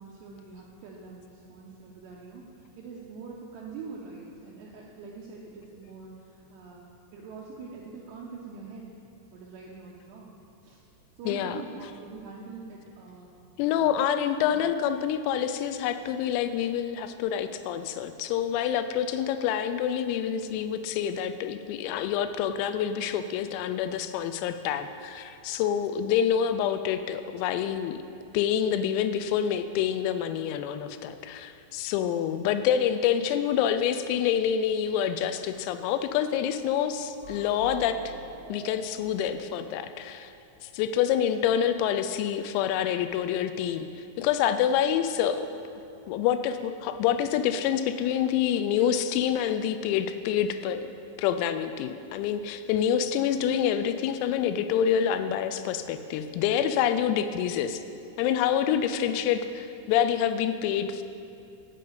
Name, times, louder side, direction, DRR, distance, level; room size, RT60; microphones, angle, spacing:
voice 1, 0.0-8.9 9.3-10.4 10.6-10.8 11.2-13.4 13.7-14.0 14.4-14.7 41.0-41.1, right 4 dB, 85° right, -3 dB, 2.5 m, -44 dB
voice 2, 11.3-11.6 13.6-28.0 28.3-38.0 38.5-40.3 40.6-45.5 46.1-50.9 51.2-57.8 58.2-61.0, left 9 dB, 90° left, 10 dB, 3.4 m, -27 dB
sound 1, 37.2-40.8, right 5 dB, 55° left, 1.1 m, -48 dB
11.5 x 5.4 x 8.3 m, 2.6 s
omnidirectional pair, 6.0 m